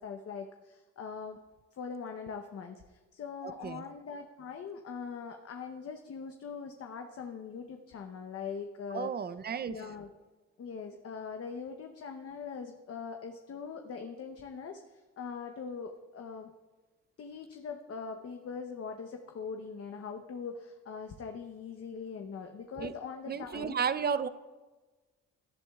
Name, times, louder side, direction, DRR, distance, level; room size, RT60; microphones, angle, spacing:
voice 1, 0.0-1.4 1.7-9.1 9.7-10.1 10.6-16.5 17.2-23.8, left 5 dB, 50° left, 4 dB, 0.9 m, -42 dB
voice 2, 3.4-3.8 8.9-9.7 22.8-22.9 23.3-24.3, right 7 dB, 35° right, 14 dB, 0.6 m, -33 dB
17.5 x 10.5 x 2.4 m, 1.2 s
cardioid pair, 90°, 30 cm